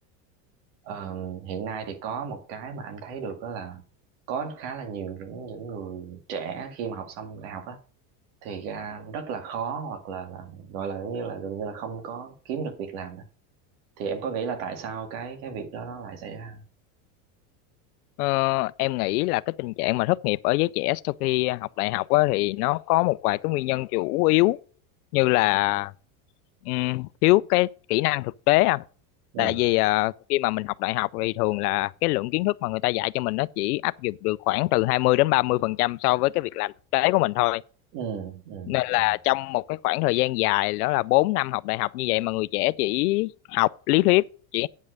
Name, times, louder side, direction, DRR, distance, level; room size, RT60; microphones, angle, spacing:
voice 1, 0.8-3.8 4.3-7.8 8.4-13.2 14.0-16.6 29.3-29.6 37.9-39.1, right 6 dB, 65° right, 2.4 m, -34 dB
voice 2, 18.2-24.6 25.1-25.9 26.6-28.8 29.4-37.6 38.7-44.7, left 21 dB, 85° left, 0.6 m, -23 dB
9.2 x 5.5 x 6.3 m
supercardioid pair, 130°, 44 cm